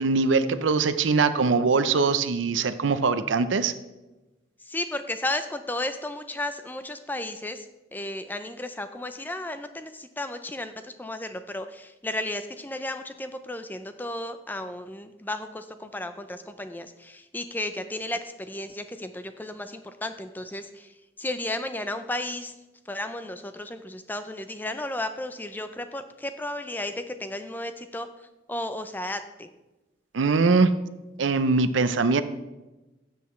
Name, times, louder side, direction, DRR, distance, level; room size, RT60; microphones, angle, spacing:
voice 1, 0.0-3.7 30.1-30.7 31.2-32.2, right 4 dB, 75° right, 12 dB, 0.6 m, -22 dB
voice 2, 4.7-7.7 7.9-22.5 22.9-28.1 28.5-29.5, left 1 dB, 10° left, 9 dB, 0.4 m, -34 dB
12.5 x 7.9 x 3.1 m, 1.1 s
head